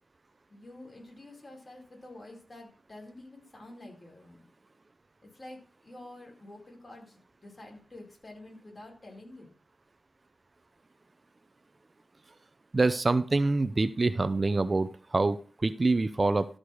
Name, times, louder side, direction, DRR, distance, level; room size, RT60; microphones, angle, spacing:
voice 1, 0.5-4.5 5.2-9.5, left 1 dB, 40° left, 0 dB, 4.9 m, -48 dB
voice 2, 12.7-16.5, right 3 dB, 35° right, 12 dB, 0.6 m, -26 dB
13.0 x 5.1 x 6.3 m, 0.40 s
wide cardioid pair, 90°, 0 cm